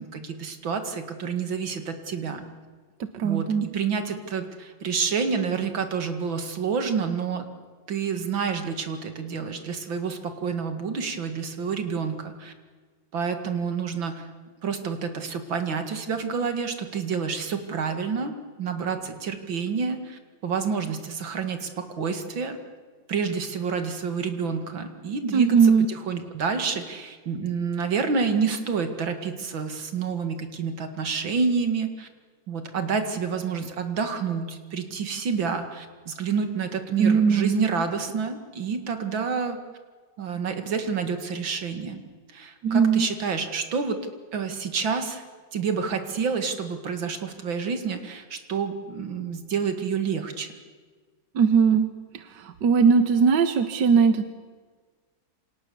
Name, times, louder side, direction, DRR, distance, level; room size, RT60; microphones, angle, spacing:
voice 1, 0.0-2.5 3.2-7.5 7.9-12.5 13.1-14.3 14.6-22.6 23.1-32.1 32.5-39.6 40.2-42.0 42.3-44.0 44.3-45.2 45.5-50.5, right 5 dB, 85° right, 7 dB, 2.8 m, -28 dB
voice 2, 3.1-3.6 25.3-25.9 37.0-37.6 42.6-43.1 51.4-51.9 52.6-54.3, right 6 dB, 65° right, 10 dB, 1.7 m, -19 dB
28.0 x 25.5 x 7.1 m, 1.5 s
omnidirectional pair, 2.1 m